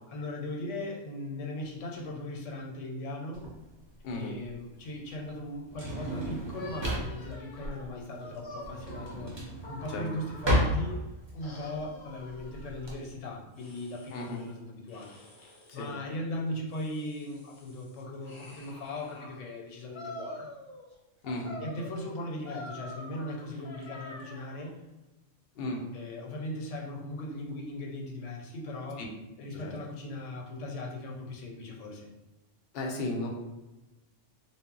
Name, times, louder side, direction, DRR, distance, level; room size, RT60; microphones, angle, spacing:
voice 1, 0.1-3.5 4.1-9.3 9.7-11.0 11.3-15.2 15.7-20.5 21.6-24.8 25.9-29.0 29.4-32.1, left 1 dB, 90° left, 0 dB, 0.9 m, -38 dB
Drawer open or close, 3.3-12.9, equal, 35° right, 0.4 m, -33 dB
sound 1, 6.5-11.0 11.4-12.9 13.6-14.5 14.9-15.9 16.5-19.3 19.9-20.9 21.2-24.7, left 1 dB, 45° left, 0.3 m, -47 dB
voice 2, 21.2-21.5 25.6-25.8 29.6-29.7 32.7-33.3, left 2 dB, 65° left, 0 dB, 0.7 m, -34 dB
2.0 x 2.0 x 3.7 m, 1.0 s
omnidirectional pair, 1.2 m